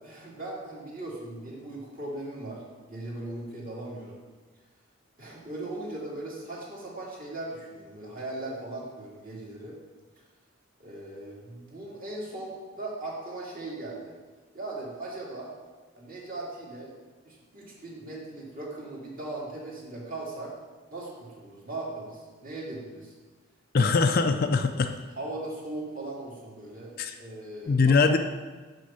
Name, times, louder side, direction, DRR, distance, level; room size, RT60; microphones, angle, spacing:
voice 1, 0.0-2.6 2.9-4.2 5.2-9.8 10.8-14.2 14.5-15.5 16.0-16.9 17.2-20.5 20.9-23.1 23.8-23.9 25.2-26.9 27.2-28.0, right 2 dB, 40° right, -4 dB, 2.2 m, -38 dB
voice 2, 23.7-24.9 27.0-27.1 27.7-28.2, left 4 dB, 45° left, 7 dB, 0.4 m, -22 dB
7.0 x 6.2 x 5.5 m, 1.3 s
head